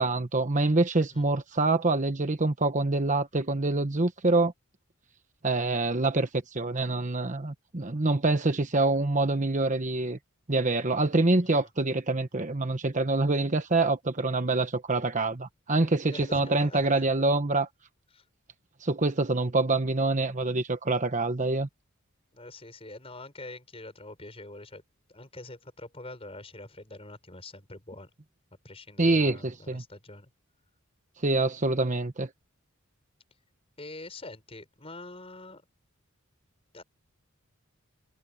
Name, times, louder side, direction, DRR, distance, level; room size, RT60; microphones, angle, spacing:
voice 1, 0.0-4.5 5.4-10.2 10.5-17.7 18.8-21.7 29.0-29.8 31.2-32.3, right 2 dB, 35° right, 1.1 m, -26 dB
voice 2, 16.0-17.1 18.1-18.2 22.3-24.8 25.1-28.1 28.6-30.3 33.8-35.6 36.7-36.8, left 2 dB, 30° left, 5.9 m, -45 dB
head